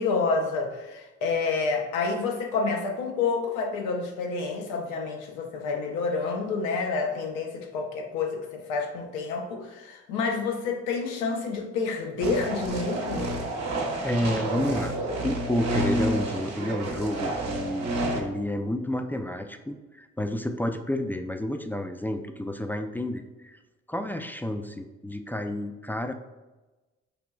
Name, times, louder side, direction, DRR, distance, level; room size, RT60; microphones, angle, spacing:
voice 1, 0.0-13.3, left 4 dB, 90° left, 3 dB, 0.6 m, -29 dB
sound 1, 12.2-18.2, right 1 dB, 60° right, 0.9 m, -29 dB
voice 2, 14.0-14.9 15.2-23.6 23.9-26.1, left 1 dB, 5° left, 6 dB, 0.3 m, -30 dB
4.9 x 2.9 x 2.2 m, 1.1 s
hypercardioid pair, 45°, 30 cm